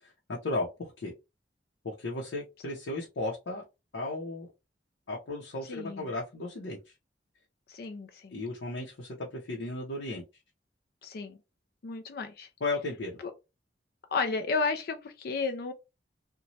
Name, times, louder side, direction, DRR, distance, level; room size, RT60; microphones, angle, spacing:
voice 1, 0.4-1.1 1.8-3.6 3.9-4.5 5.1-6.8 8.3-10.2 12.6-13.2, left 2 dB, 85° left, 0.7 m, -35 dB
voice 2, 5.7-6.1 7.7-8.4 11.0-11.4 11.8-12.5 14.1-15.7, left 4 dB, 55° left, 0.4 m, -33 dB
3.0 x 2.2 x 2.7 m
head